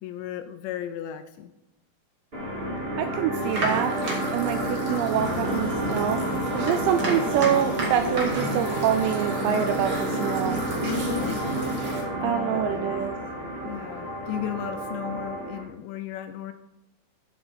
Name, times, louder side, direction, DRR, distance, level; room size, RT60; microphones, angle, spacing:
voice 1, 0.0-1.5 6.8-7.1 10.8-11.4 12.2-12.9 13.6-16.5, left 11 dB, 80° left, 8 dB, 2.6 m, -35 dB
sound 1, 2.3-15.6, right 1 dB, 40° right, 0.8 m, -30 dB
voice 2, 3.0-4.0 4.3-10.6 12.2-13.1, right 9 dB, 85° right, 9 dB, 2.5 m, -26 dB
sound 2, 3.4-12.0, right 2 dB, 60° right, 1.2 m, -32 dB
8.6 x 8.1 x 4.3 m, 0.99 s
omnidirectional pair, 5.5 m